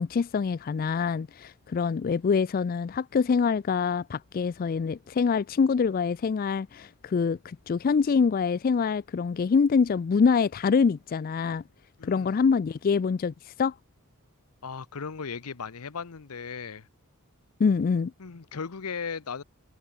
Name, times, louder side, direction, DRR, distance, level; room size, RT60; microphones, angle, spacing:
voice 1, 0.0-11.6 12.0-13.8 17.6-18.1, left 5 dB, 40° left, 0.3 m, -25 dB
voice 2, 12.0-12.4 14.6-16.9 18.2-19.4, left 5 dB, 80° left, 0.8 m, -37 dB
head